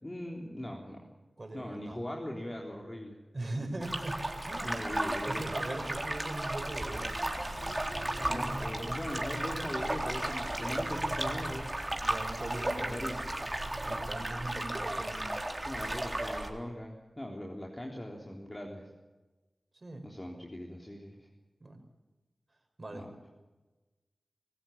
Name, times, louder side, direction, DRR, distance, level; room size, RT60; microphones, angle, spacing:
voice 1, 0.0-1.1 1.5-3.2 4.6-5.5 8.0-11.7 12.7-13.4 15.7-18.9 20.0-21.3 22.9-23.1, left 1 dB, 30° left, -1 dB, 3.7 m, -40 dB
voice 2, 1.4-2.0 3.3-4.8 5.2-7.3 8.2-9.3 12.0-13.1 13.8-15.4 19.7-20.1 21.6-21.8 22.8-23.1, right 2 dB, 45° right, 6 dB, 5.4 m, -41 dB
sound 1, 3.8-16.5, right 1 dB, 30° right, 3.8 m, -34 dB
sound 2, 7.4-14.1, left 1 dB, 70° left, 4.8 m, -46 dB
25.5 x 15.5 x 8.8 m, 1.2 s
cardioid pair, 40°, 0 cm